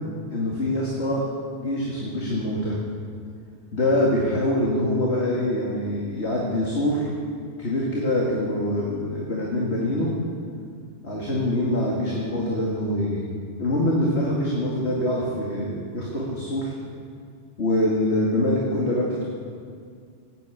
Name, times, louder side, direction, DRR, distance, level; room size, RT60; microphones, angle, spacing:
voice 1, 0.3-1.2 1.6-2.8 3.7-7.1 7.6-10.1 11.0-13.2 13.6-16.7 17.6-19.3, left 1 dB, 70° left, -4 dB, 2.6 m, -24 dB
18.5 x 9.1 x 8.4 m, 2.1 s
omnidirectional pair, 1.2 m